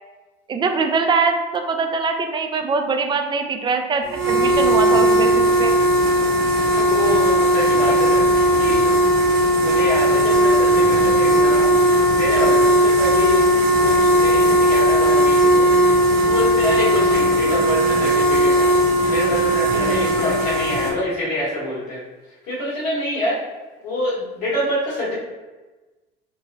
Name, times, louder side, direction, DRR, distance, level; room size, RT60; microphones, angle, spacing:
voice 1, 0.5-5.8, right 4 dB, 15° right, 5 dB, 0.3 m, -22 dB
sound 1, 4.1-20.9, right 1 dB, 45° right, 1.0 m, -17 dB
voice 2, 6.5-8.9 9.6-11.8 12.1-13.5 13.8-15.7 16.3-22.0 22.5-23.4 23.8-25.1, left 1 dB, 60° left, -9 dB, 1.4 m, -26 dB
3.9 x 2.1 x 2.7 m, 1.2 s
hypercardioid pair, 70°, 29 cm